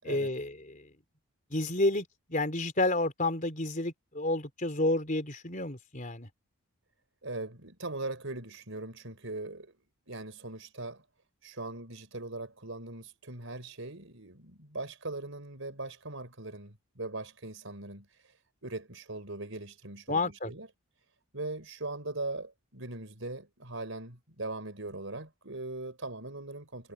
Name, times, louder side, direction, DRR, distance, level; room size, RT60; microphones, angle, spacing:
voice 1, 0.0-0.9 1.5-6.3 20.1-20.5, left 2 dB, 35° left, 3.9 m, -30 dB
voice 2, 7.2-9.7 10.1-11.0 11.4-18.3 18.6-20.7 21.3-26.9, right 2 dB, 65° right, 4.9 m, -40 dB
head